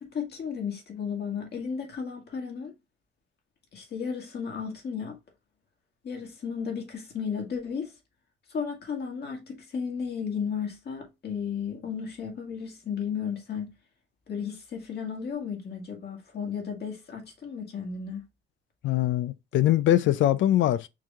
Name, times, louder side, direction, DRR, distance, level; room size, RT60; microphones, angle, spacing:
voice 1, 0.0-2.7 3.7-5.2 6.0-7.9 8.5-13.7 14.3-18.2, left 6 dB, 55° left, 1.9 m, -34 dB
voice 2, 18.8-20.9, left 13 dB, 75° left, 0.5 m, -22 dB
4.8 x 3.0 x 3.5 m
cardioid pair, 90°, 20 cm